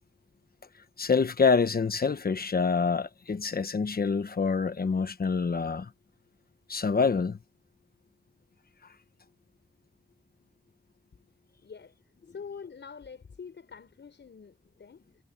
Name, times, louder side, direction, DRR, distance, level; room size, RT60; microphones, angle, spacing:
voice 1, 1.0-5.9 6.7-7.4, left 5 dB, 55° left, 1.1 m, -26 dB
voice 2, 11.6-11.9 12.3-15.0, left 6 dB, 85° left, 6.4 m, -45 dB
wide cardioid pair, 110°, 18 cm